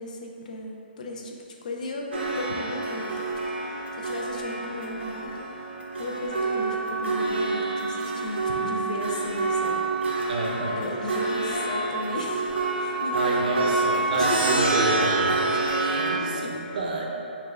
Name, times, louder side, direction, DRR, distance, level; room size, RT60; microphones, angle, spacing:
voice 1, 0.0-3.3 3.9-5.4 6.0-10.3 10.7-12.5 12.8-14.4 15.8-16.6, left 1 dB, 45° left, 1 dB, 0.5 m, -36 dB
sound 1, 2.1-16.2, right 3 dB, 90° right, 0.7 m, -27 dB
voice 2, 10.3-10.9 12.7-17.1, right 2 dB, 50° right, -1 dB, 0.6 m, -29 dB
5.7 x 2.3 x 3.3 m, 2.7 s
hypercardioid pair, 175°, 6 cm